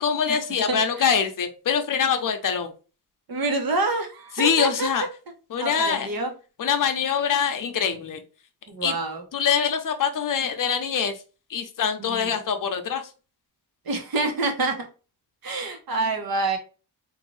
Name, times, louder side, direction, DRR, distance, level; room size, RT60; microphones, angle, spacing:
voice 1, 0.0-2.7 4.4-5.0 5.5-6.1 6.6-8.2 8.8-8.9 9.3-11.1 11.5-13.0, left 7 dB, 50° left, 6 dB, 0.7 m, -24 dB
voice 2, 0.7-1.0 3.3-4.9 5.6-6.3 8.7-9.2 12.0-12.3 13.9-14.9 15.4-16.6, right 3 dB, 55° right, 3 dB, 1.1 m, -27 dB
3.9 x 2.6 x 3.2 m, 0.34 s
wide cardioid pair, 125°, 41 cm